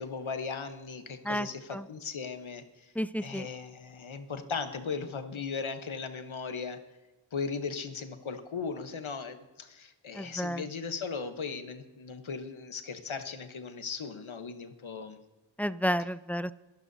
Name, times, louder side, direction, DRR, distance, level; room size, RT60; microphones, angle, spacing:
voice 1, 0.0-2.9 3.2-6.8 7.3-15.2 16.0-16.1, left 5 dB, 90° left, 8 dB, 1.1 m, -37 dB
voice 2, 3.0-3.5 10.1-10.6 15.6-16.5, equal, 5° left, 15 dB, 0.3 m, -31 dB
23.0 x 12.0 x 2.7 m, 1.1 s
wide cardioid pair, 40°, 46 cm